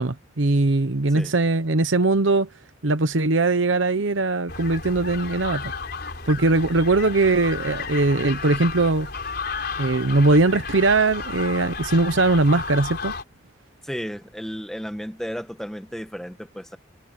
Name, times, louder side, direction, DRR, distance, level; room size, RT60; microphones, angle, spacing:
voice 1, 0.0-2.5 2.8-5.7 6.3-9.1 9.8-13.1, right 2 dB, 90° right, 1.0 m, -20 dB
sound 1, 4.5-13.2, left 4 dB, 55° left, 4.5 m, -33 dB
voice 2, 13.8-16.8, equal, ahead, 1.6 m, -33 dB
head